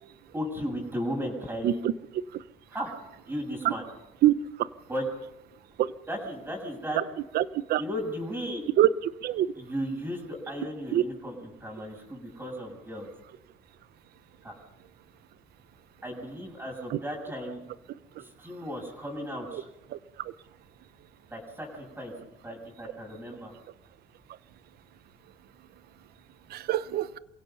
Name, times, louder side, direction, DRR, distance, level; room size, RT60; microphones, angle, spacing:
voice 1, 0.3-2.0 2.7-2.9 3.3-3.8 4.9-5.1 6.1-7.0 7.8-8.7 9.6-13.1 14.4-14.5 16.0-17.6 18.2-19.6 21.3-22.1 22.4-23.5, equal, 15° right, 7.1 m, -35 dB
voice 2, 7.3-7.8 8.8-8.9 9.2-9.5 10.9-11.0 16.9-17.0 19.5-19.6 26.5-27.2, right 14 dB, 70° right, 0.9 m, -24 dB
28.0 x 17.0 x 5.6 m
cardioid pair, 110°, 17 cm